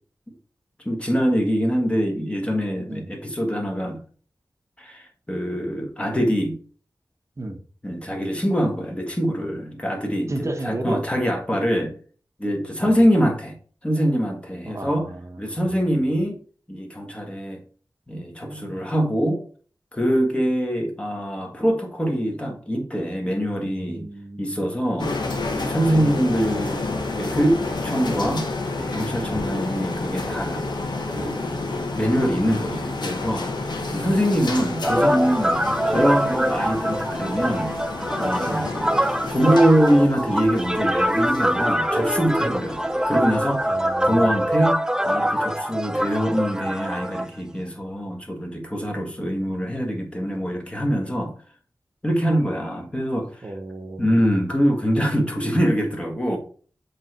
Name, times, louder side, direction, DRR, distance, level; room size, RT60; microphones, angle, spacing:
voice 1, 0.8-4.0 4.8-6.6 7.8-11.9 12.4-13.6 13.8-15.1 15.4-16.4 16.7-17.6 18.1-19.4 19.9-24.0 24.4-25.1 25.5-28.5 28.7-30.6 31.1-35.6 35.9-37.7 38.2-39.0 39.3-42.8 43.1-43.6 44.0-51.3 52.0-53.5 54.0-56.4, equal, 15° left, 1.5 m, -24 dB
voice 2, 10.3-11.0 12.8-13.0 14.6-16.1 18.4-18.8 23.6-24.7 25.9-26.2 29.2-29.5 35.6-35.8 38.5-38.7 43.7-44.5 53.4-54.3, right 2 dB, 40° right, 0.9 m, -34 dB
sound 1, 25.0-44.7, left 3 dB, 65° left, 1.1 m, -30 dB
sound 2, 34.8-47.3, equal, 10° right, 0.4 m, -24 dB
7.3 x 3.3 x 4.5 m
wide cardioid pair, 80°, 8 cm